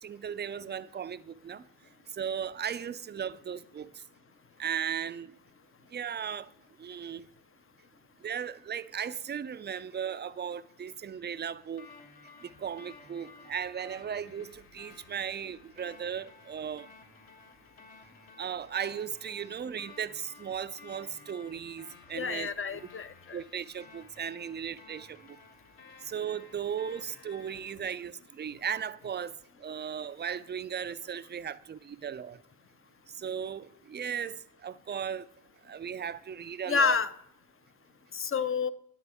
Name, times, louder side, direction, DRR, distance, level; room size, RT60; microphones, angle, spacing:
voice 1, 0.0-1.6 2.1-4.0 4.6-5.3 5.9-6.5 6.8-7.3 8.2-11.9 12.4-16.9 18.4-22.5 23.3-25.2 26.0-32.4 33.2-35.3 35.6-37.0, right 8 dB, 25° right, 0.4 m, -36 dB
sound 1, 11.8-27.7, left 4 dB, 60° left, 1.7 m, -55 dB
voice 2, 22.1-23.4 36.7-37.1 38.1-38.7, left 5 dB, 30° left, 0.6 m, -29 dB
9.4 x 8.2 x 3.5 m
supercardioid pair, 45°, 43 cm